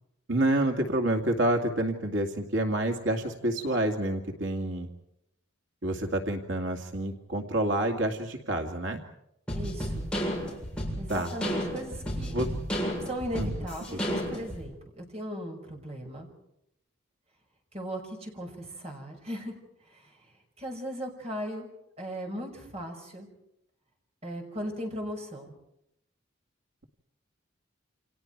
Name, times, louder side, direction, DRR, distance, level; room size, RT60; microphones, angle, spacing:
voice 1, 0.3-4.9 5.8-9.0 11.1-11.3 12.3-12.5 13.4-13.5 13.9-14.0, right 1 dB, 85° right, 3 dB, 2.4 m, -28 dB
sound 1, 9.5-14.6, equal, 5° left, 7.4 m, -32 dB
voice 2, 9.5-10.1 11.0-12.3 13.0-16.3 17.7-19.5 19.9-20.2 20.6-21.7 22.0-23.3 24.2-25.5, equal, 35° right, 2 dB, 5.9 m, -37 dB
29.5 x 28.0 x 4.7 m, 0.81 s
head